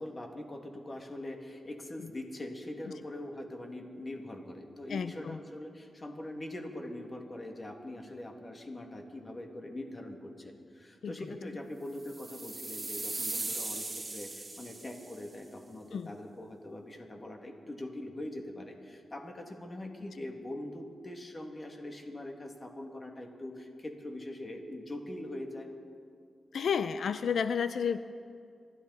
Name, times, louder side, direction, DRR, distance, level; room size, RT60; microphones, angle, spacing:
voice 1, 0.0-25.7, left 1 dB, 35° left, 2 dB, 2.4 m, -42 dB
voice 2, 4.9-5.4 11.0-11.1 15.9-16.1 26.5-28.0, left 7 dB, 80° left, 12 dB, 0.5 m, -31 dB
sound 1, 12.0-15.2, right 2 dB, 30° right, 3.1 m, -38 dB
26.5 x 12.5 x 4.2 m, 2.3 s
cardioid pair, 70°, 0 cm